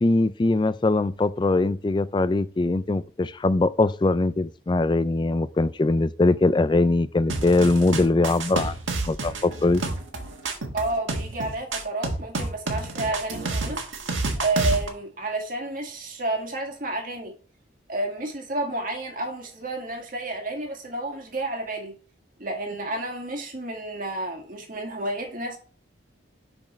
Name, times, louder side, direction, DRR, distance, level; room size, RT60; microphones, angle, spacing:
voice 1, 0.0-8.7 9.1-9.8, left 2 dB, 25° left, 0.3 m, -22 dB
sound 1, 7.3-14.9, right 3 dB, 85° right, 1.7 m, -29 dB
voice 2, 10.7-13.8 14.4-17.3 17.9-21.9 22.4-25.6, right 2 dB, 45° right, 2.0 m, -30 dB
6.3 x 6.3 x 3.1 m
head